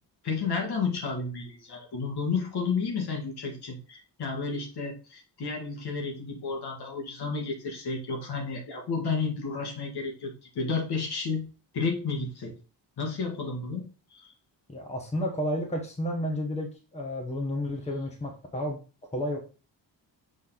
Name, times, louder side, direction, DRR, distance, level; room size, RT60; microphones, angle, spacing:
voice 1, 0.2-11.4 11.7-12.5 13.0-14.3, left 4 dB, 65° left, 2 dB, 1.7 m, -32 dB
voice 2, 14.7-18.8 19.1-19.4, equal, 15° left, 2 dB, 1.2 m, -31 dB
6.6 x 4.0 x 3.8 m, 0.34 s
wide cardioid pair, 155°, 42 cm